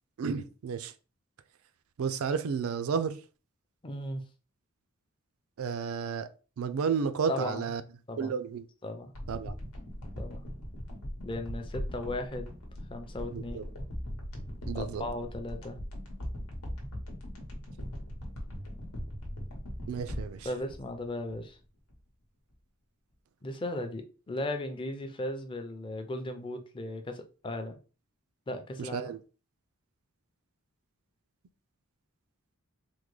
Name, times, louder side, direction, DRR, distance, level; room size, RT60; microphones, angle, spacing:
voice 1, 0.2-0.9 2.0-3.2 5.6-6.3 6.6-7.8 8.2-8.7 9.3-9.5 13.3-13.7 14.7-15.0 19.9-20.5 28.8-29.2, right 6 dB, 70° right, 0.4 m, -32 dB
voice 2, 3.8-4.2 7.3-7.7 8.1-8.3 8.8-9.1 10.2-10.4 11.2-12.5 12.9-13.7 14.7-15.8 20.4-21.6 23.4-27.8 28.5-29.1, left 1 dB, 25° left, 0.4 m, -36 dB
sound 1, 9.1-21.6 21.9-22.0, equal, 90° left, 1.0 m, -40 dB
3.6 x 2.2 x 3.1 m
head